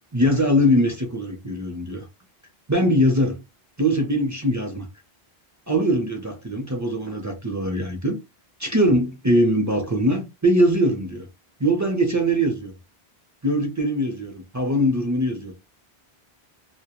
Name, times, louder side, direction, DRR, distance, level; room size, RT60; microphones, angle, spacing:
voice 1, 0.1-2.0 2.7-3.4 3.8-4.9 5.7-8.2 8.6-11.3 11.6-12.7 13.4-15.5, equal, 25° right, 0.4 m, -22 dB
2.1 x 2.1 x 2.9 m
omnidirectional pair, 1.0 m